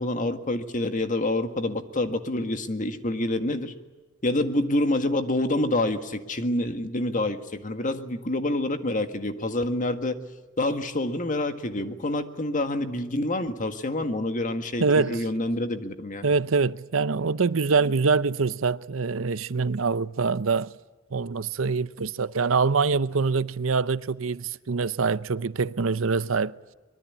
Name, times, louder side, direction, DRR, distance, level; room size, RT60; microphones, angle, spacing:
voice 1, 0.0-3.7 4.2-10.2 10.6-16.3, left 1 dB, 40° left, 1.8 m, -27 dB
voice 2, 14.8-15.2 16.2-20.7 21.1-26.5, right 4 dB, 75° right, 0.7 m, -24 dB
24.5 x 22.5 x 8.5 m
head